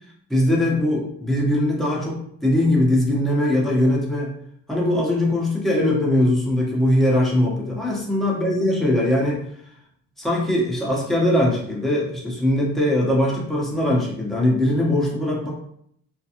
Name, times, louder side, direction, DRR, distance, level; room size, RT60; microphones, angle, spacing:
voice 1, 0.3-4.4 4.7-9.4 10.2-15.5, left 1 dB, ahead, -4 dB, 0.9 m, -21 dB
2.4 x 2.3 x 2.8 m, 0.68 s
cardioid pair, 90°, 30 cm